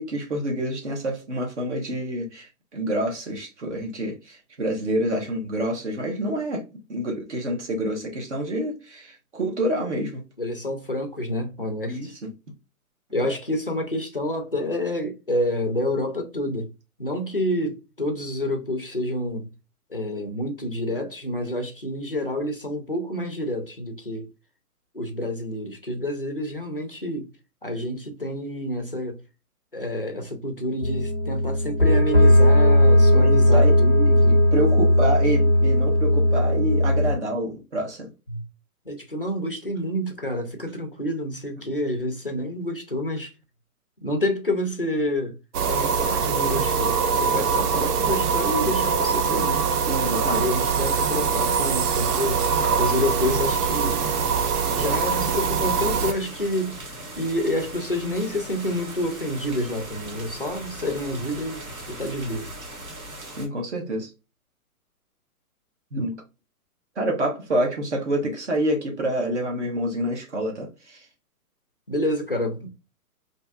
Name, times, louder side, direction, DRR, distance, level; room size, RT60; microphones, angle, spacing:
voice 1, 0.0-6.6 6.9-10.2 11.9-12.3 33.1-33.8 34.3-38.1 49.9-50.4 63.4-64.1 65.9-66.1 67.0-71.0, right 1 dB, 50° right, 1.1 m, -27 dB
voice 2, 10.4-12.1 13.1-16.7 17.0-19.5 19.9-24.3 24.9-27.3 27.6-29.2 29.7-34.4 38.3-38.4 38.9-43.3 44.0-45.4 45.7-49.6 50.2-52.4 52.8-54.0 54.7-56.8 57.2-62.5 71.9-72.7, left 1 dB, 40° left, 0.4 m, -28 dB
sound 1, 30.8-37.1, left 1 dB, 5° right, 0.9 m, -17 dB
sound 2, 45.5-56.1, right 6 dB, 85° right, 0.7 m, -23 dB
sound 3, 52.0-63.5, right 1 dB, 65° right, 1.8 m, -39 dB
3.3 x 2.7 x 2.2 m
hypercardioid pair, 180°, 45 cm